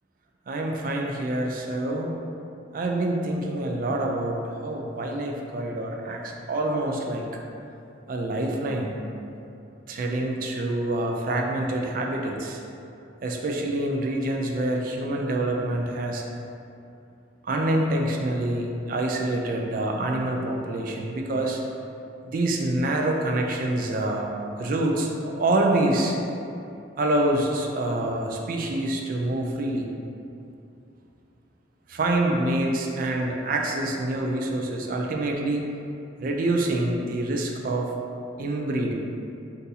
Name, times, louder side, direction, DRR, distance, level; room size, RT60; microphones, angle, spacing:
voice 1, 0.5-2.1 2.7-7.2 8.1-9.0 9.9-12.6 13.2-16.2 17.4-21.6 22.2-24.3 24.6-26.2 27.0-29.9 31.9-35.6 36.2-37.9 38.4-38.9, right 1 dB, 45° right, 1 dB, 0.3 m, -26 dB
2.7 x 2.6 x 3.8 m, 2.7 s
head